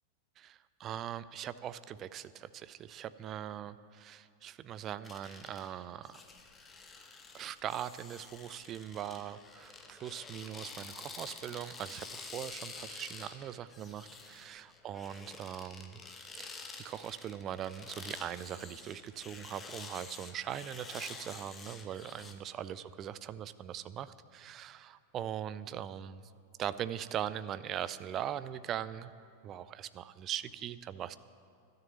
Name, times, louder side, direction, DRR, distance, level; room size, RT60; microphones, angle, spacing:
voice 1, 0.4-6.2 7.3-16.0 16.3-16.6 16.8-26.2 26.6-29.1 29.4-31.2, right 10 dB, 30° right, 15 dB, 0.4 m, -41 dB
sound 1, 5.0-22.3, left 4 dB, 15° left, 1.0 m, -49 dB
12.0 x 6.7 x 9.3 m, 2.4 s
figure-of-eight pair, 90°, 0 cm